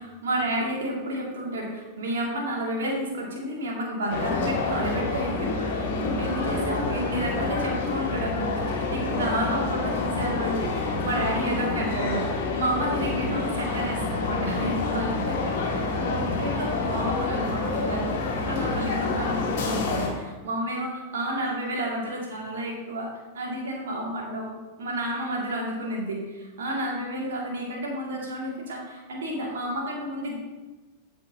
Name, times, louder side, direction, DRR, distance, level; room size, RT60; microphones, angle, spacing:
voice 1, 0.0-23.1 23.3-24.5 24.8-30.4, right 1 dB, 60° right, -3 dB, 2.6 m, -31 dB
sound 1, 4.1-20.1, left 3 dB, 50° left, 1.9 m, -28 dB
14.0 x 5.2 x 2.9 m, 1.2 s
figure-of-eight pair, 90°, 0 cm